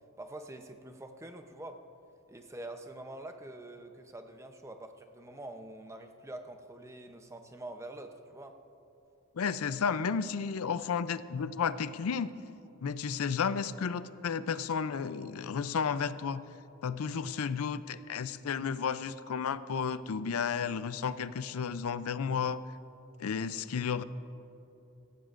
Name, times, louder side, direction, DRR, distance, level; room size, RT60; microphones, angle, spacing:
voice 1, 0.2-1.8 2.3-8.6, right 1 dB, 15° right, 6 dB, 0.7 m, -45 dB
voice 2, 9.4-12.3 12.8-16.4 16.8-22.6 23.2-24.0, left 6 dB, 80° left, 14 dB, 0.5 m, -32 dB
18.5 x 15.0 x 2.5 m, 2.8 s
head